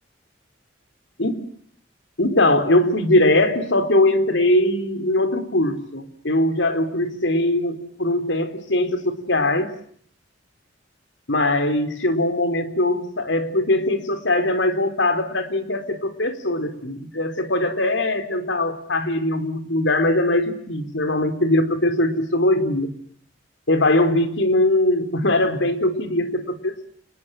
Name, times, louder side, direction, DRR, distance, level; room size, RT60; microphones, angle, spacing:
voice 1, 2.2-9.7 11.3-22.9 23.7-26.8, left 1 dB, 75° left, 9 dB, 4.0 m, -21 dB
29.0 x 20.5 x 9.2 m, 0.62 s
head